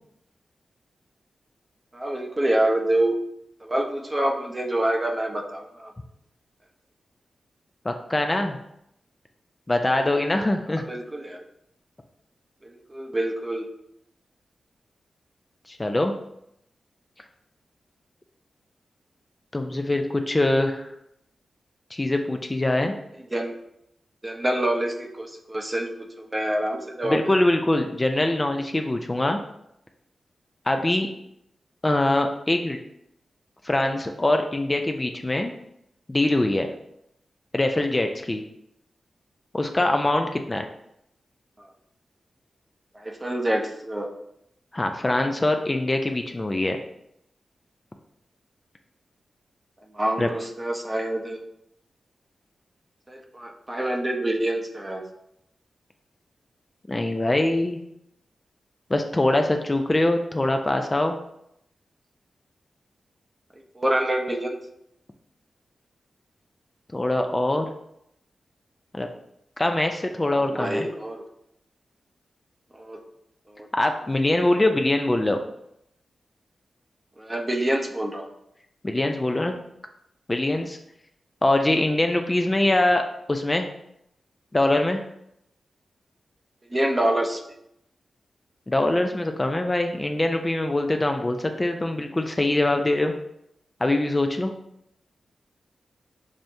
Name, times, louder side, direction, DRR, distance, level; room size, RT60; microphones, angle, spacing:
voice 1, 1.9-3.2 3.6-5.9 10.9-11.4 12.6-13.7 23.3-23.6 24.2-27.3 42.9-44.1 49.9-51.4 53.1-55.0 63.8-64.5 70.3-71.2 72.7-73.0 73.6-73.7 77.2-78.3 86.7-87.4, right 1 dB, 30° right, 2 dB, 0.7 m, -26 dB
voice 2, 7.8-8.6 9.7-10.8 15.7-16.1 19.5-20.9 21.9-22.9 27.0-29.4 30.7-31.1 31.8-32.8 33.6-35.5 36.1-36.7 37.5-38.4 39.5-40.7 44.7-46.8 50.2-50.3 56.9-57.8 58.9-61.2 66.9-67.7 68.9-69.1 69.6-70.9 73.7-75.4 78.8-79.6 80.3-80.8 81.4-83.0 83.3-83.7 84.5-85.0 88.7-93.1 93.8-94.5, left 1 dB, 25° left, 5 dB, 0.4 m, -23 dB
6.0 x 2.1 x 2.7 m, 0.78 s
cardioid pair, 50°, 0 cm